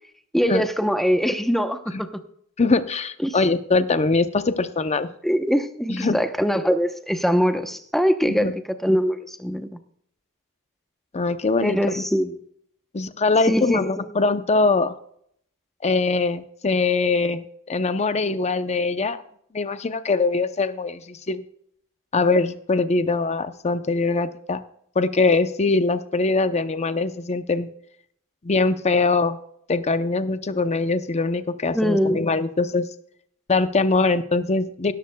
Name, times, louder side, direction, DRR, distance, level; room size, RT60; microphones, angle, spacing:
voice 1, 0.3-2.1 3.2-3.4 5.2-9.8 11.6-12.3 13.5-14.1 31.7-32.2, equal, ahead, 7 dB, 0.8 m, -22 dB
voice 2, 2.6-5.1 5.9-6.2 8.3-8.5 11.1-12.0 12.9-15.0 15.8-19.2 19.5-21.4 22.1-24.6 25.0-27.7 28.4-29.4 29.7-32.9 33.5-34.9, left 3 dB, 30° left, 11 dB, 0.6 m, -22 dB
17.0 x 13.5 x 2.3 m, 0.67 s
head